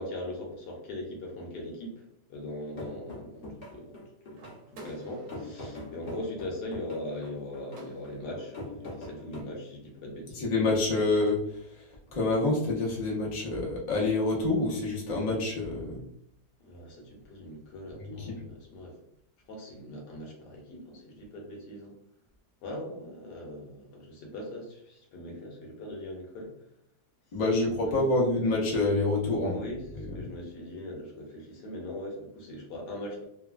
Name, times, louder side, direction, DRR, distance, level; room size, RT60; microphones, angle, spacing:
voice 1, 0.0-10.5 16.6-18.9 19.5-21.9 22.6-26.5 27.5-27.9 29.4-33.2, left 1 dB, 70° left, 0 dB, 1.3 m, -40 dB
sound 1, 2.8-9.4, left 1 dB, 55° left, 0.6 m, -43 dB
sound 2, 4.3-8.4, right 2 dB, 65° right, 1.2 m, -52 dB
voice 2, 10.3-16.0 18.0-18.4 27.3-29.6 29.9-30.3, left 2 dB, 90° left, -3 dB, 0.3 m, -27 dB
3.2 x 2.2 x 2.4 m, 0.73 s
omnidirectional pair, 2.0 m